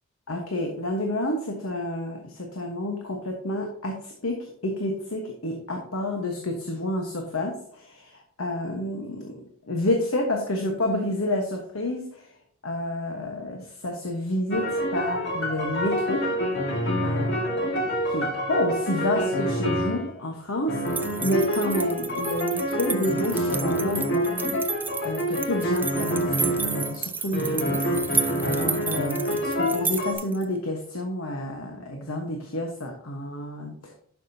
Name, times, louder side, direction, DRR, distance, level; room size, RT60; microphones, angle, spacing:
voice 1, 0.3-12.3 12.6-16.2 17.0-24.6 25.0-26.3 26.6-33.9, left 1 dB, 80° left, 2 dB, 1.2 m, -29 dB
sound 1, 14.5-20.1 20.7-27.0 27.3-30.1, equal, 55° left, 1.8 m, -27 dB
sound 2, 20.9-30.4, right 5 dB, 10° right, 0.4 m, -32 dB
11.0 x 5.9 x 2.8 m, 0.65 s
head